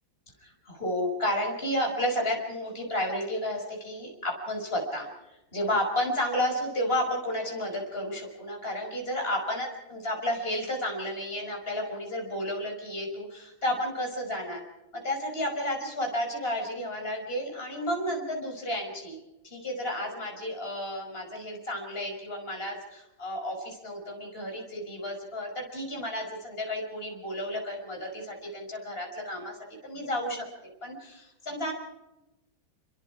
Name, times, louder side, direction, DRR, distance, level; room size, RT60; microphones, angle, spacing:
voice 1, 0.4-14.6 14.9-19.2 19.4-29.6 29.8-30.4 30.8-31.7, left 1 dB, 30° left, 1 dB, 5.9 m, -32 dB
29.0 x 22.5 x 4.9 m, 0.93 s
omnidirectional pair, 2.1 m